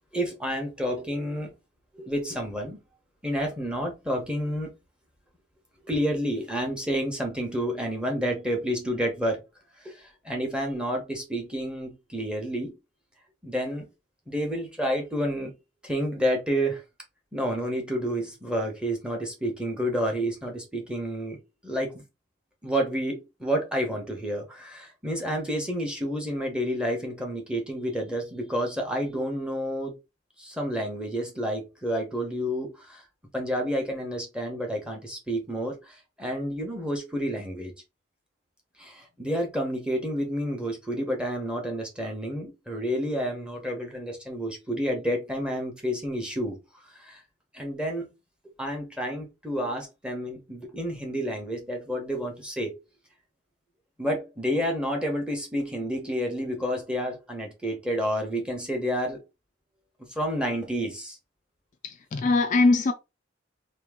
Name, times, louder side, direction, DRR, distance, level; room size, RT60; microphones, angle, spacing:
voice 1, 0.1-1.5 1.9-2.8 3.2-4.7 5.8-9.4 9.8-12.8 13.4-13.9 14.3-15.5 15.8-16.8 17.3-21.4 21.6-22.0 22.6-29.9 30.4-33.0 33.3-37.7 38.8-46.6 46.9-47.2 47.5-48.1 48.6-52.7 54.0-59.2 60.1-61.2, equal, 5° right, 1.0 m, -30 dB
voice 2, 61.8-62.9, left 3 dB, 40° left, 0.4 m, -22 dB
2.9 x 2.8 x 3.6 m
head